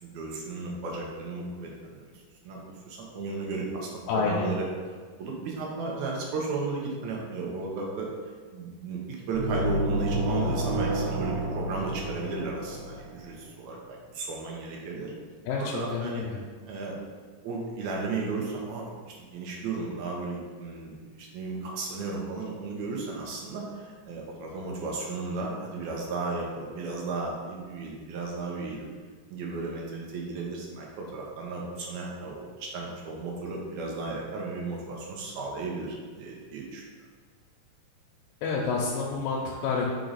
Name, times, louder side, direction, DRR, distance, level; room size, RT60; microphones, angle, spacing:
voice 1, 0.0-2.1 2.4-2.6 2.9-4.6 5.2-8.1 8.5-15.1 15.6-16.2 16.7-17.0 17.4-28.9 29.3-36.8, right 3 dB, 70° right, -2 dB, 2.1 m, -34 dB
voice 2, 4.1-4.5 15.5-15.6 15.9-16.4 38.4-39.9, left 5 dB, 85° left, -3 dB, 2.4 m, -28 dB
sound 1, 9.3-13.2, right 1 dB, 85° right, 2.5 m, -29 dB
5.0 x 4.6 x 4.1 m, 1.5 s
omnidirectional pair, 3.9 m